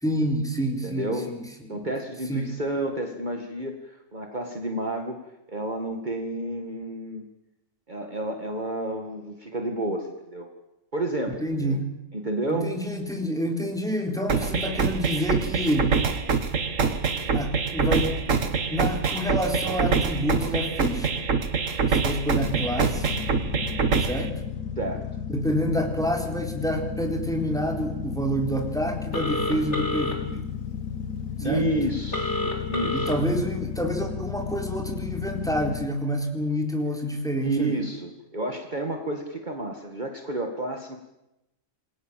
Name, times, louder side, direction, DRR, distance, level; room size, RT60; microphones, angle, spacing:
voice 1, 0.0-1.9 2.3-2.5 11.4-11.8 12.5-15.9 17.3-18.2 18.7-21.3 21.9-23.1 24.0-24.3 25.3-30.4 31.4-31.6 32.9-37.8, equal, ahead, 2 dB, 3.8 m, -28 dB
voice 2, 0.8-1.3 1.7-5.2 5.5-7.2 7.9-10.5 10.9-11.8 12.1-12.7 24.8-25.0 31.4-33.1 37.4-41.0, right 1 dB, 35° right, 4 dB, 2.0 m, -30 dB
sound 1, 14.3-24.3, right 5 dB, 70° right, 1.9 m, -25 dB
sound 2, 22.4-35.9, left 7 dB, 80° left, 1.6 m, -33 dB
Telephone, 29.1-30.1 32.1-33.1, left 2 dB, 55° left, 4.2 m, -28 dB
27.5 x 21.0 x 7.5 m, 0.93 s
omnidirectional pair, 1.4 m